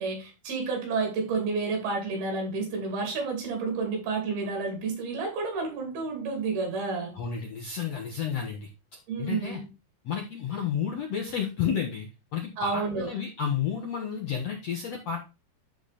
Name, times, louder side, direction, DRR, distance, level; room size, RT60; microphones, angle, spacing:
voice 1, 0.0-7.2 9.1-9.6 12.6-13.1, right 4 dB, 70° right, 2 dB, 4.7 m, -30 dB
voice 2, 7.1-8.7 9.2-9.6 10.0-15.3, left 8 dB, 65° left, 1 dB, 1.7 m, -31 dB
12.0 x 4.0 x 4.2 m, 0.28 s
omnidirectional pair, 4.6 m